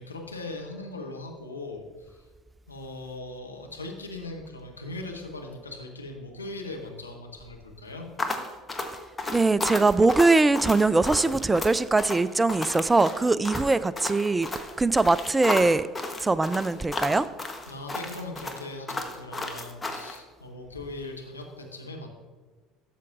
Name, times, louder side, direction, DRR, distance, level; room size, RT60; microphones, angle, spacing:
voice 1, 0.0-2.3 2.7-8.1 17.7-22.1, left 2 dB, 90° left, 1 dB, 0.9 m, -39 dB
sound 1, 8.2-20.2, left 2 dB, 20° left, 1.0 m, -33 dB
voice 2, 9.3-14.5 14.8-15.9 16.2-17.3, right 3 dB, 15° right, 16 dB, 0.3 m, -22 dB
12.5 x 7.0 x 2.5 m, 1.4 s
figure-of-eight pair, 65°, 0 cm